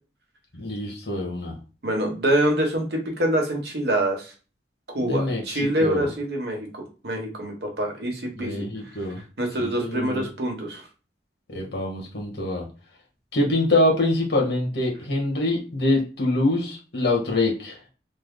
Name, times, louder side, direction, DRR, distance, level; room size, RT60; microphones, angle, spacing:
voice 1, 0.5-1.6 5.0-6.1 8.4-9.2 9.6-10.2 11.5-12.7 13.3-17.8, left 2 dB, 70° left, 0 dB, 1.3 m, -25 dB
voice 2, 1.8-4.3 4.9-8.7 9.4-10.8, right 1 dB, 70° right, 2 dB, 1.0 m, -25 dB
3.4 x 2.0 x 3.6 m, 0.34 s
head